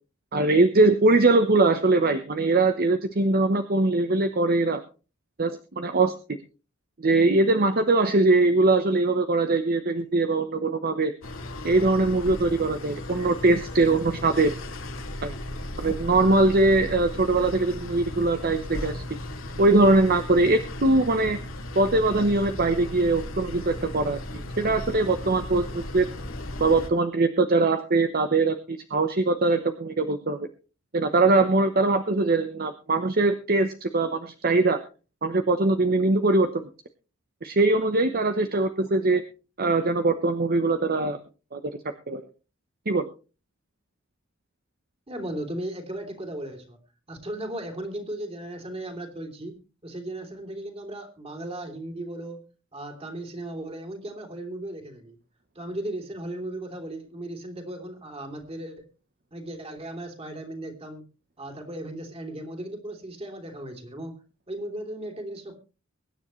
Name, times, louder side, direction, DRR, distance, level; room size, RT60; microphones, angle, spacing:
voice 1, 0.3-4.8 5.4-6.1 7.0-11.1 11.6-14.5 15.2-15.3 15.8-19.2 19.6-21.4 21.7-26.1 26.6-30.5 30.9-34.8 35.2-36.7 37.4-39.2 39.6-41.2 41.5-41.6 42.1-42.2 42.9-43.1, right 2 dB, 45° right, 8 dB, 0.9 m, -22 dB
sound 1, 11.2-26.9, left 1 dB, 80° left, 2.6 m, -36 dB
voice 2, 45.1-46.8 47.1-52.4 52.7-55.2 55.5-58.9 59.3-61.1 61.4-64.2 64.5-65.6, right 1 dB, 30° right, 3 dB, 3.1 m, -36 dB
23.5 x 9.9 x 3.2 m, 0.34 s
head